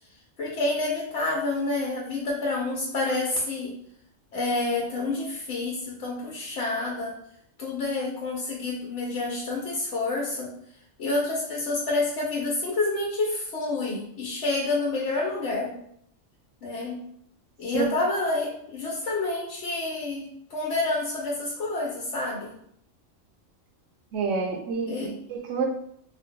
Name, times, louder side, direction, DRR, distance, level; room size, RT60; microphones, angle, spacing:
voice 1, 0.4-3.7 4.3-7.2 7.6-10.5 11.0-15.8 16.6-17.0 17.6-22.5 24.9-25.1, left 2 dB, 65° left, -3 dB, 0.9 m, -28 dB
voice 2, 24.1-25.7, right 5 dB, 70° right, 2 dB, 0.9 m, -28 dB
2.7 x 2.0 x 3.6 m, 0.69 s
omnidirectional pair, 1.3 m